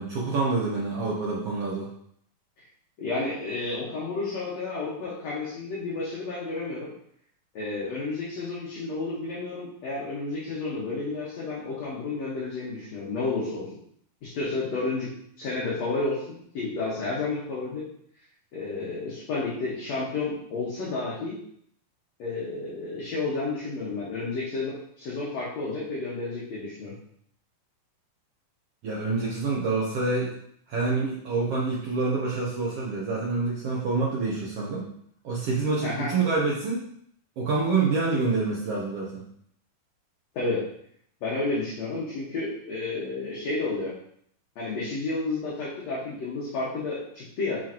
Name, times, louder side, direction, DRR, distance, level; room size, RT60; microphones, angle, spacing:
voice 1, 0.0-1.9 28.8-30.3 30.7-34.9 35.2-36.8 37.4-39.3, right 3 dB, 75° right, -5 dB, 1.3 m, -27 dB
voice 2, 3.0-6.9 7.5-13.8 14.2-15.1 15.4-17.8 18.5-21.4 22.2-26.9 35.8-36.1 40.3-40.6 41.2-43.9 44.6-47.6, left 3 dB, 55° left, -7 dB, 2.3 m, -31 dB
7.7 x 5.0 x 3.0 m, 0.67 s
omnidirectional pair, 4.2 m